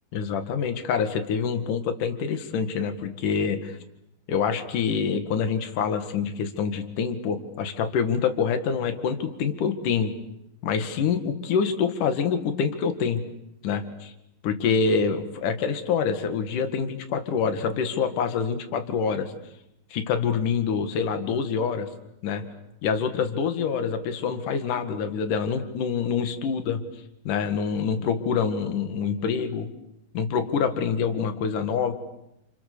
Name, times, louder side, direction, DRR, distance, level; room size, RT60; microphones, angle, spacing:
voice 1, 0.1-3.8 4.3-10.1 10.6-13.2 13.6-14.1 14.4-19.3 19.9-21.9 22.2-22.4 22.8-26.8 27.2-29.7 30.1-31.9, left 6 dB, 60° left, 7 dB, 3.2 m, -26 dB
29.5 x 29.0 x 6.9 m, 0.85 s
omnidirectional pair, 4.6 m